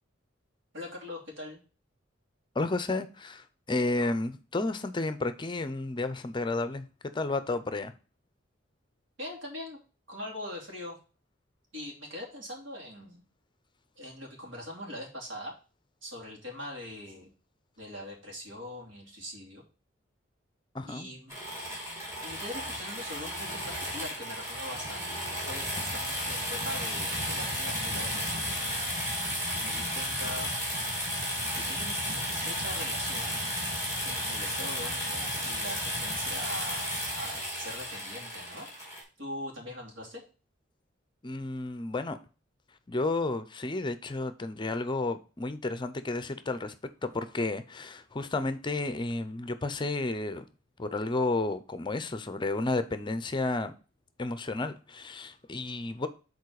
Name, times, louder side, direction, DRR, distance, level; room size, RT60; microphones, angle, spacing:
voice 1, 0.7-1.6 4.0-4.1 9.2-9.8 10.1-11.0 11.7-13.2 14.0-15.5 16.0-17.3 17.8-19.6 20.8-21.4 22.2-28.6 29.5-30.5 31.5-33.4 34.0-38.7 39.2-40.2, left 1 dB, 80° right, 2.8 m, -42 dB
voice 2, 2.5-7.9 20.7-21.1 41.2-42.2 42.9-46.7 47.0-50.4 50.8-53.7 54.2-56.1, left 2 dB, 25° left, 0.5 m, -32 dB
sound 1, 21.3-39.0, equal, 15° right, 3.2 m, -33 dB
7.2 x 4.2 x 4.7 m
head